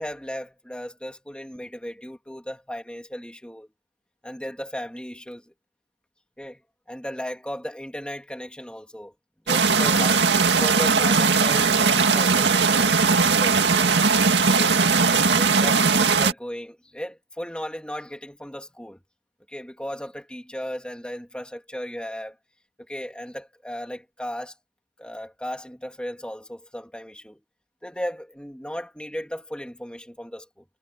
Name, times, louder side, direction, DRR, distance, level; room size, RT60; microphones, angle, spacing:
voice 1, 0.0-3.7 4.2-5.5 6.4-6.6 6.9-9.1 9.5-10.2 10.6-14.1 14.5-14.8 15.1-19.0 19.5-22.4 22.8-24.5 25.0-27.4 27.8-30.6, equal, 5° left, 3.3 m, -35 dB
sound 1, 9.5-16.3, right 5 dB, 85° right, 2.1 m, -19 dB
head